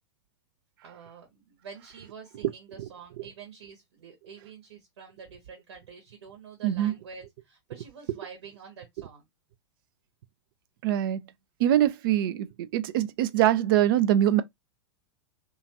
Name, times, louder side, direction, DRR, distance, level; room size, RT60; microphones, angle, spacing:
voice 1, 0.8-9.3, right 6 dB, 65° right, 1.1 m, -47 dB
voice 2, 6.6-6.9 10.8-11.2 11.6-12.5 12.7-14.4, right 12 dB, 50° right, 0.4 m, -23 dB
2.8 x 2.4 x 2.7 m
figure-of-eight pair, 100°, 15 cm